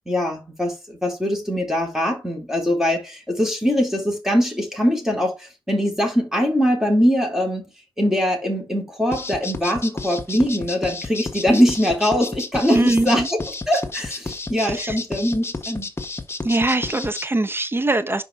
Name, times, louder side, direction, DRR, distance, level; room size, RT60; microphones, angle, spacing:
voice 1, 0.1-7.7 8.0-13.4 13.7-15.9, equal, 5° right, 3.9 m, -22 dB
sound 1, 9.1-17.2, left 3 dB, 25° left, 1.5 m, -31 dB
voice 2, 12.7-13.3 14.7-15.0 16.4-18.2, right 2 dB, 25° right, 1.3 m, -21 dB
5.7 x 5.5 x 5.0 m
supercardioid pair, 55°, 10 cm